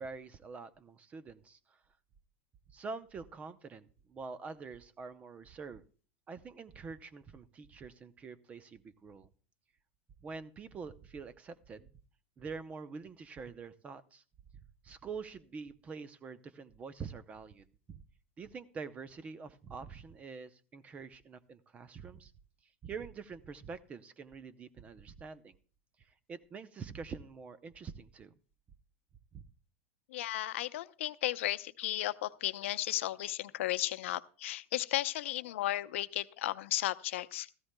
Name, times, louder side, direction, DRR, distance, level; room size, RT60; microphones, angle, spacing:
voice 1, 0.0-1.6 2.7-5.8 6.3-9.3 10.2-11.9 12.4-14.2 14.8-18.0 18.4-22.3 22.8-25.6 26.3-28.3 29.3-29.4, right 5 dB, 20° right, 0.6 m, -46 dB
voice 2, 30.1-37.5, left 15 dB, 80° left, 0.6 m, -34 dB
16.5 x 14.0 x 2.2 m
supercardioid pair, 150°, 7 cm